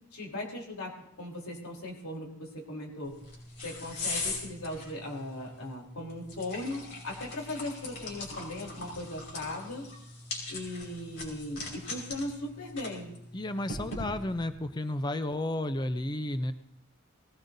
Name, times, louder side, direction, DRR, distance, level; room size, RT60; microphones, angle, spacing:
voice 1, 0.1-3.1 3.6-9.9 10.5-13.1, left 1 dB, 90° left, -1 dB, 3.5 m, -38 dB
sound 1, 3.0-14.5, left 2 dB, 55° left, 4.8 m, -41 dB
voice 2, 13.3-16.5, left 1 dB, 20° left, 10 dB, 0.5 m, -32 dB
20.0 x 17.0 x 2.7 m, 0.78 s
head